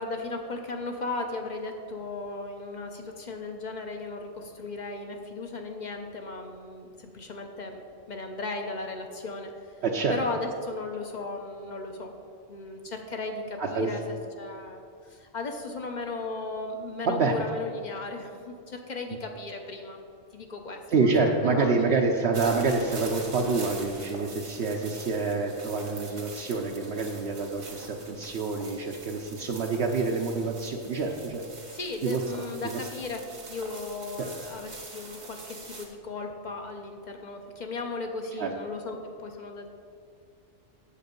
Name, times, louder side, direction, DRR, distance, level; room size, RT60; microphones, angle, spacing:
voice 1, 0.0-7.8 8.1-9.8 10.1-12.1 12.5-14.8 15.1-20.0 20.3-21.3 21.6-21.7 31.7-33.2 33.5-39.7, left 3 dB, 40° left, 3 dB, 0.9 m, -36 dB
voice 2, 9.8-10.1 13.6-13.9 17.0-17.3 20.9-31.4 32.0-32.2 32.7-32.8 34.2-34.3 38.4-38.5, right 4 dB, 65° right, 1 dB, 0.9 m, -27 dB
sound 1, 22.3-35.9, right 3 dB, 85° right, 1.9 m, -44 dB
8.6 x 7.3 x 5.2 m, 2.3 s
omnidirectional pair, 1.2 m